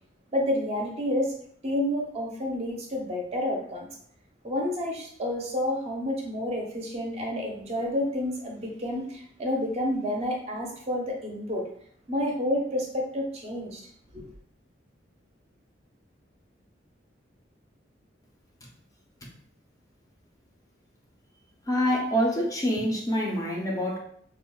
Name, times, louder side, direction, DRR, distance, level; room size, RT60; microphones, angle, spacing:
voice 1, 0.3-1.3 1.6-3.9 4.4-11.6 12.1-13.8 14.1-14.2, left 1 dB, 35° right, 0 dB, 0.5 m, -29 dB
voice 2, 21.7-24.0, equal, 20° left, -1 dB, 0.4 m, -26 dB
3.6 x 2.0 x 2.2 m, 0.63 s
head